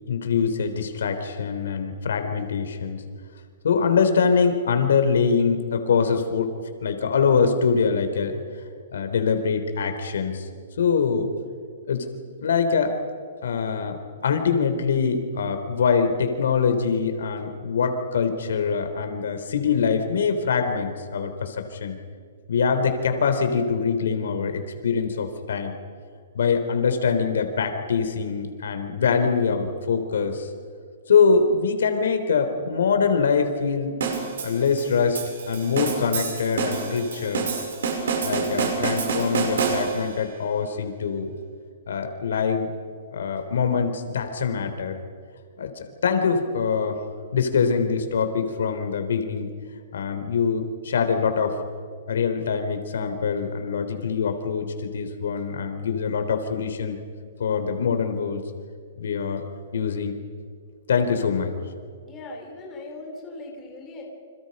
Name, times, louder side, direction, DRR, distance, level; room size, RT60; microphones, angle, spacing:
voice 1, 0.1-3.0 3.6-6.5 6.8-8.4 8.9-10.5 10.8-11.3 11.9-12.1 12.4-13.0 13.4-22.0 22.5-25.8 26.4-30.5 31.1-34.0 34.4-35.2 35.5-37.5 38.2-41.4 41.9-42.7 43.1-45.0 45.6-47.0 47.3-49.5 49.9-51.6 52.1-57.0 57.4-58.4 59.0-59.4 59.7-60.2 60.9-61.5, left 5 dB, 75° left, 7 dB, 3.4 m, -24 dB
sound 1, 34.0-40.2, right 5 dB, 70° right, 6.1 m, -27 dB
voice 2, 62.0-64.0, left 2 dB, 15° left, 0 dB, 3.8 m, -39 dB
29.0 x 27.0 x 5.4 m, 2.1 s
hypercardioid pair, 180°, 0 cm